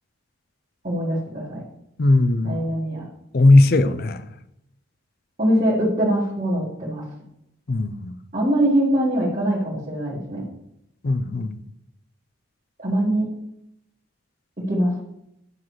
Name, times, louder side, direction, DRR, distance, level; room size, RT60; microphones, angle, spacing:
voice 1, 0.8-1.6 2.4-3.0 5.4-7.0 8.3-10.4 12.8-13.3 14.6-14.9, right 1 dB, 35° right, 1.5 m, -22 dB
voice 2, 2.0-2.6 3.3-4.2 7.7-8.2 11.0-11.5, left 2 dB, 45° left, 0.4 m, -17 dB
9.7 x 5.9 x 3.1 m
head